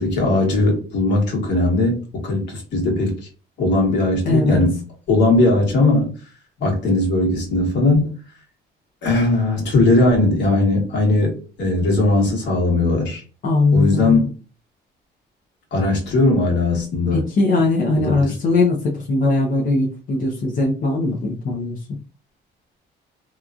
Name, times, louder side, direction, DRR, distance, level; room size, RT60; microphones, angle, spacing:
voice 1, 0.0-3.2 3.6-4.8 5.1-6.1 6.6-8.2 9.0-13.2 13.7-14.3 15.7-17.2 18.0-18.3, left 2 dB, 65° left, 1.4 m, -18 dB
voice 2, 4.2-4.6 13.4-14.2 17.1-21.8, left 2 dB, 45° left, 0.6 m, -20 dB
2.8 x 2.4 x 2.4 m
cardioid pair, 115°, 19 cm